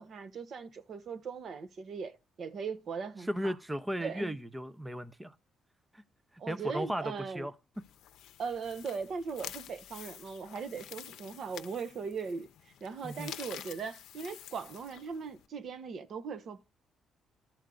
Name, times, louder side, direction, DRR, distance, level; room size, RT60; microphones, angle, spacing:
voice 1, 0.0-3.5 4.0-4.3 6.4-7.5 8.4-16.6, right 5 dB, 60° right, 0.9 m, -39 dB
voice 2, 3.3-5.3 5.9-6.0 6.5-7.5 13.0-13.3, equal, 10° right, 0.6 m, -35 dB
sound 1, 7.7-15.5, left 11 dB, 80° left, 0.6 m, -49 dB
12.5 x 4.5 x 3.8 m
cardioid pair, 90°, 0 cm